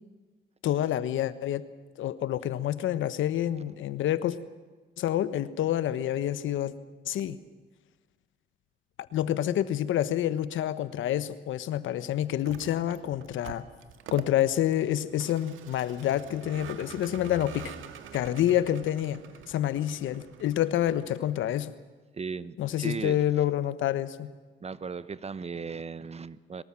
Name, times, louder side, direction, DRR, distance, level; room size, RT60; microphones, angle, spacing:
voice 1, 0.6-1.6 2.0-4.4 5.0-6.7 7.0-7.4 9.1-13.6 14.1-17.7 18.1-19.2 19.5-21.7 22.6-24.3, left 12 dB, 80° left, 14 dB, 1.3 m, -28 dB
Vehicle, 12.3-21.7, right 8 dB, 80° right, 1.9 m, -46 dB
voice 2, 22.1-23.2 24.6-26.6, right 5 dB, 30° right, 16 dB, 1.0 m, -37 dB
23.0 x 19.5 x 7.6 m, 1.3 s
cardioid pair, 90°, 20 cm